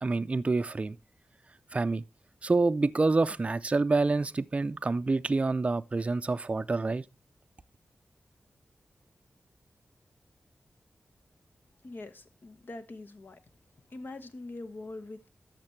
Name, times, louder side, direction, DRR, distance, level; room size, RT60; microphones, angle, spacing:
voice 1, 0.0-1.0 1.7-2.0 2.4-7.0, right 3 dB, 35° right, 0.4 m, -27 dB
voice 2, 11.8-13.4 13.9-15.3, left 2 dB, 60° left, 1.0 m, -43 dB
12.0 x 6.7 x 3.2 m
wide cardioid pair, 85°, 4 cm